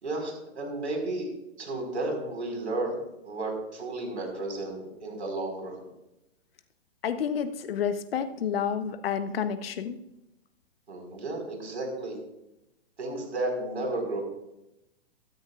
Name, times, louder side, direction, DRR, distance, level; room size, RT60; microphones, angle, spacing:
voice 1, 0.0-1.3 1.6-3.0 3.2-5.9 10.9-12.2 13.0-14.2, right 2 dB, 85° right, 2 dB, 5.1 m, -33 dB
voice 2, 7.0-10.0, left 7 dB, 60° left, 10 dB, 1.2 m, -29 dB
15.5 x 13.5 x 2.5 m, 0.89 s
hypercardioid pair, 130°, 33 cm